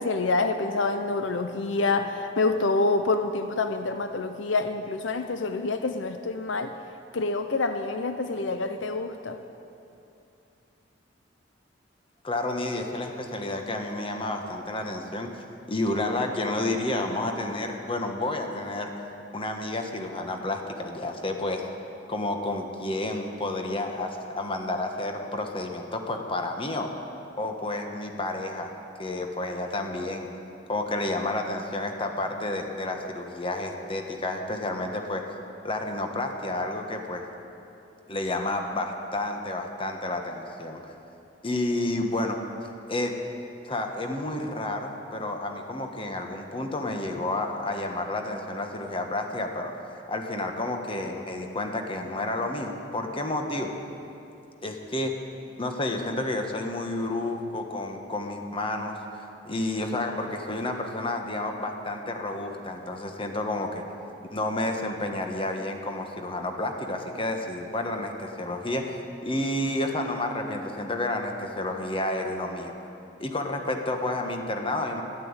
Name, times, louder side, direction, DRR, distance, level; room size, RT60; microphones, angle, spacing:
voice 1, 0.0-6.7 7.1-9.4, left 3 dB, 80° left, 8 dB, 0.7 m, -27 dB
voice 2, 12.2-15.3 15.7-18.9 19.3-21.7 22.1-26.9 27.4-28.7 29.0-30.3 30.7-35.2 35.6-37.3 38.1-40.8 41.4-42.4 42.9-43.1 43.6-53.7 54.6-55.1 55.6-63.8 64.3-72.7 73.2-75.0, left 2 dB, 30° left, 4 dB, 1.3 m, -30 dB
12.0 x 11.5 x 8.9 m, 2.7 s
head